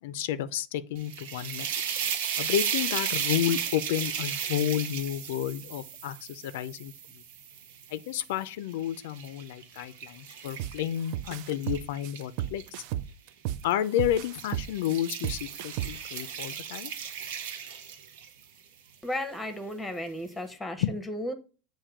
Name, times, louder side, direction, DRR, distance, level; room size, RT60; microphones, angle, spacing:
voice 1, 0.0-1.7 2.4-7.2 7.9-12.6 13.6-16.9 20.8-20.9, left 11 dB, 80° left, 0.4 m, -31 dB
sound 1, 1.0-8.2 8.7-12.7 13.6-13.9 14.2-18.4, right 8 dB, 85° right, 1.0 m, -35 dB
sound 2, 10.6-10.8 11.1-13.6 14.0-16.1, right 12 dB, 50° right, 0.3 m, -33 dB
voice 2, 19.0-21.3, left 1 dB, 5° left, 0.7 m, -34 dB
7.3 x 2.6 x 5.0 m
supercardioid pair, 165°, 0 cm